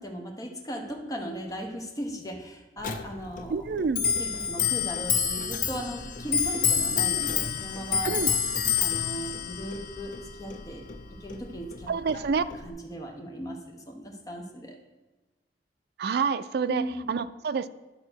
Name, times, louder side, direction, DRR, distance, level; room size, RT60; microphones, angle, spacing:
voice 1, 0.0-3.6 4.1-8.4 8.8-10.1 10.4-10.8 11.2-12.2 12.6-14.8 16.6-17.1, equal, 20° left, 2 dB, 1.1 m, -37 dB
Clock, 2.8-12.7, left 7 dB, 50° left, 0.6 m, -29 dB
voice 2, 3.5-4.0 8.0-8.3 11.9-12.4 16.0-17.7, right 5 dB, 60° right, 13 dB, 0.4 m, -28 dB
11.0 x 3.7 x 6.3 m, 1.1 s
head